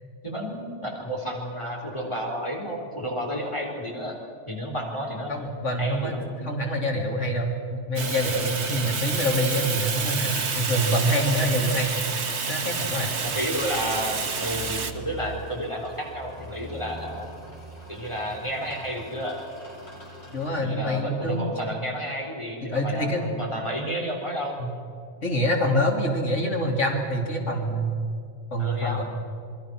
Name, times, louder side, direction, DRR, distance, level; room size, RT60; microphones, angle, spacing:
voice 1, 0.2-4.2 4.5-5.4 5.8-6.5 13.2-17.3 17.9-19.4 20.6-24.6 28.6-29.0, equal, 25° left, -1 dB, 4.1 m, -31 dB
voice 2, 5.3-6.1 6.4-11.9 12.5-13.1 20.3-21.4 22.6-23.2 24.6-24.7 25.2-28.0 28.5-29.0, equal, 85° left, -1 dB, 3.3 m, -26 dB
Fire, 8.0-14.9, right 5 dB, 65° right, 1.7 m, -29 dB
sound 1, 9.9-20.5, right 1 dB, 60° left, 7.6 m, -44 dB
28.5 x 21.5 x 6.2 m, 2.5 s
omnidirectional pair, 1.2 m